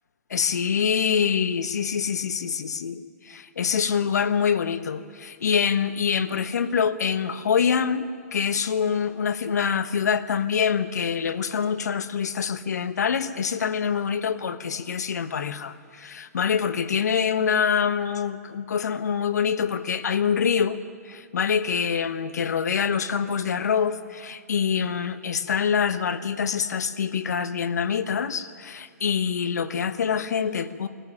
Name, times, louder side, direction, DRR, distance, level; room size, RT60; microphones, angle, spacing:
voice 1, 0.3-20.8 21.0-30.9, left 7 dB, 75° left, 12 dB, 1.3 m, -25 dB
21.0 x 14.5 x 9.8 m, 2.1 s
hypercardioid pair, 145°, 9 cm